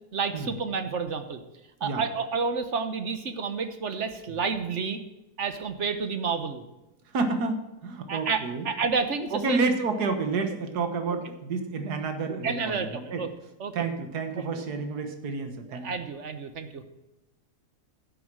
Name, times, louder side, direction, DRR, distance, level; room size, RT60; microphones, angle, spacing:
voice 1, 0.1-1.4 1.8-5.0 5.4-6.6 8.1-9.7 12.4-13.3 13.6-13.9 14.4-14.6 15.7-16.8, right 5 dB, 55° right, 9 dB, 1.2 m, -30 dB
voice 2, 7.1-8.7 9.3-13.2 13.7-15.9, right 4 dB, 80° right, 7 dB, 1.9 m, -29 dB
10.5 x 8.7 x 6.1 m, 1.0 s
omnidirectional pair, 1.7 m